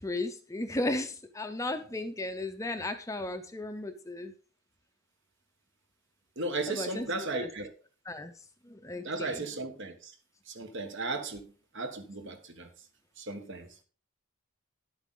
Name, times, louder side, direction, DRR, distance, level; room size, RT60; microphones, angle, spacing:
voice 1, 0.0-4.3 6.7-7.5 8.1-8.3 8.6-9.4, left 2 dB, 15° left, 0.6 m, -35 dB
voice 2, 6.3-7.7 9.0-10.1 10.5-12.7 13.2-13.7, right 2 dB, 55° right, 1.4 m, -36 dB
11.0 x 8.3 x 3.9 m
head